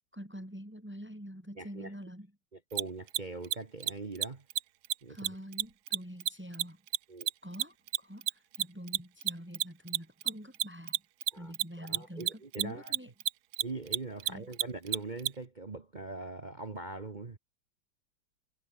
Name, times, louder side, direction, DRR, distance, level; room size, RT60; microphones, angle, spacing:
voice 1, 0.1-2.3 5.1-6.8 7.4-11.0 11.4-13.1 14.2-14.5, equal, 5° right, 7.1 m, -46 dB
voice 2, 1.6-1.9 2.5-4.4 5.0-5.2 7.1-7.3 11.3-12.9 13.6-17.4, right 3 dB, 30° right, 1.0 m, -42 dB
Mechanisms, 2.7-2.8 3.1-3.2 3.4-3.6 3.8-3.9 4.2-4.3 4.5-4.6 4.8-4.9 5.2-15.3, right 16 dB, 80° right, 1.5 m, -29 dB
omnidirectional pair, 2.3 m